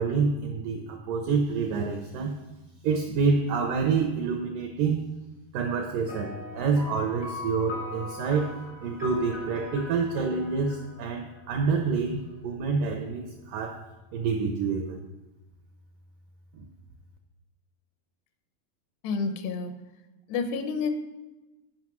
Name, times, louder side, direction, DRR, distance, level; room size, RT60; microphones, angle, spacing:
voice 1, 0.0-2.4 2.8-5.1 5.5-13.9 14.1-15.0 16.5-16.6, right 5 dB, 85° right, 4 dB, 1.9 m, -27 dB
sound 1, 6.1-11.8, left 2 dB, 20° left, 0.4 m, -41 dB
voice 2, 19.0-19.7 20.3-20.9, left 5 dB, 80° left, 7 dB, 2.9 m, -29 dB
9.7 x 5.3 x 6.0 m, 1.1 s
omnidirectional pair, 4.9 m